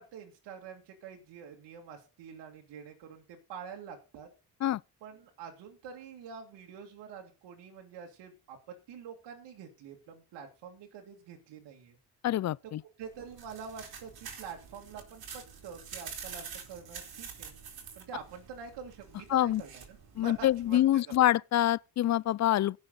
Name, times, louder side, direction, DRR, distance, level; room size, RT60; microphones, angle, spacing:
voice 1, 0.0-4.3 5.0-12.0 13.0-17.6 18.0-21.2, right 6 dB, 80° right, 2.3 m, -46 dB
voice 2, 12.2-12.8 19.3-19.6 20.2-22.8, left 13 dB, 45° left, 0.4 m, -26 dB
sound 1, 13.0-20.9, right 6 dB, 60° right, 3.3 m, -47 dB
16.0 x 6.4 x 3.9 m
supercardioid pair, 55°, 41 cm